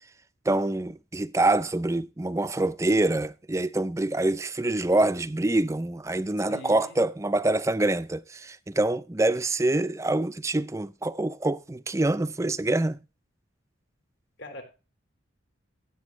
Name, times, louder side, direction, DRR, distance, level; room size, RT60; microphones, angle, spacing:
voice 1, 0.5-13.0, right 2 dB, 15° right, 0.4 m, -25 dB
voice 2, 6.5-7.0 14.4-14.6, left 1 dB, 70° left, 4.3 m, -42 dB
15.0 x 8.2 x 3.2 m
head